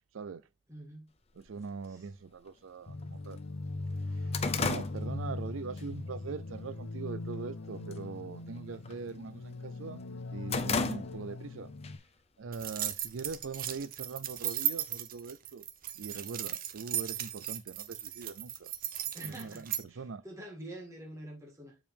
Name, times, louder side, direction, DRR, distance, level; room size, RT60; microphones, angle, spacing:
voice 1, 0.7-1.1 1.9-2.1 19.1-21.8, right 1 dB, 15° right, 1.8 m, -46 dB
voice 2, 1.3-3.4 4.1-4.3 4.6-10.0 10.3-11.7 12.4-15.6 16.0-18.7 19.2-20.2, right 4 dB, 90° right, 0.5 m, -42 dB
sound 1, 1.5-1.6 2.5-2.6 3.0-3.1 3.5-5.9 6.3-6.6 7.0-7.5 7.8-8.1 8.4-9.6 10.0-11.5 11.8-12.0 12.9-13.7, left 4 dB, 30° left, 0.5 m, -35 dB
sound 2, 2.9-12.0, left 2 dB, 75° left, 0.7 m, -40 dB
sound 3, 12.5-19.8, right 12 dB, 45° right, 0.7 m, -36 dB
7.1 x 4.8 x 3.4 m
head